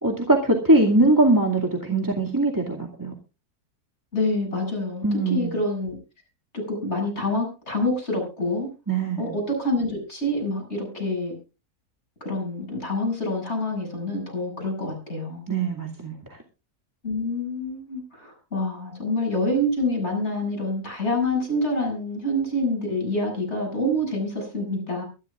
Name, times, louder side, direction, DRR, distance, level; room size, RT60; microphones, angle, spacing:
voice 1, 0.0-3.1 5.0-5.5 8.9-9.3 15.5-16.1, right 2 dB, 10° right, 0 dB, 2.3 m, -21 dB
voice 2, 4.1-6.0 6.5-8.7 9.2-11.3 12.2-15.4 17.0-25.0, left 1 dB, 45° left, 1 dB, 8.2 m, -27 dB
23.0 x 12.0 x 2.5 m, 0.32 s
omnidirectional pair, 1.6 m